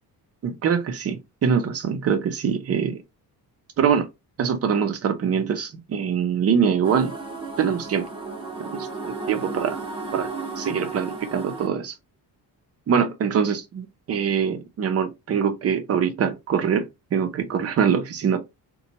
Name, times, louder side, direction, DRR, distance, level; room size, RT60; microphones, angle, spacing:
voice 1, 0.4-3.0 3.8-4.1 4.4-7.2 7.6-8.1 8.6-9.8 10.1-11.9 12.9-18.4, right 7 dB, 40° right, 0.6 m, -24 dB
sound 1, 6.8-11.7, right 3 dB, 15° right, 0.9 m, -34 dB
4.1 x 2.2 x 2.7 m
cardioid pair, 170°, 39 cm